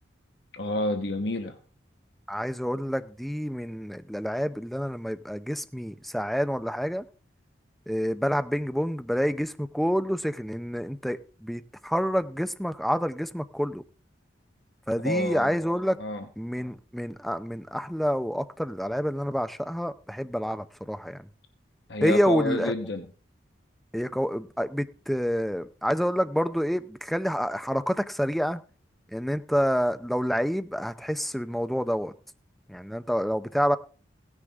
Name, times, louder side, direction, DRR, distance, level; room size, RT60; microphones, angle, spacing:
voice 1, 0.5-1.6 15.0-15.6 16.0-16.3 21.9-23.1, left 1 dB, 65° left, 1.1 m, -29 dB
voice 2, 2.3-7.0 7.9-13.8 14.9-16.0 16.4-21.3 22.0-22.7 23.9-28.6 29.1-32.1 32.7-33.8, equal, ahead, 0.5 m, -28 dB
16.5 x 9.8 x 3.5 m
head